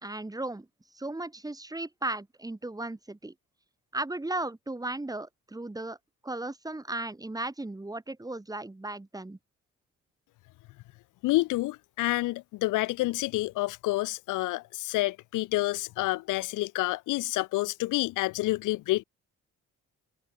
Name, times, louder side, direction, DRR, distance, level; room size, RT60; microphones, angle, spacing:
voice 1, 0.0-0.7 0.9-3.3 3.9-6.0 6.2-9.4, right 2 dB, 10° right, 2.4 m, -36 dB
voice 2, 11.2-19.0, left 19 dB, 85° left, 0.6 m, -28 dB
cardioid pair, 90°, 30 cm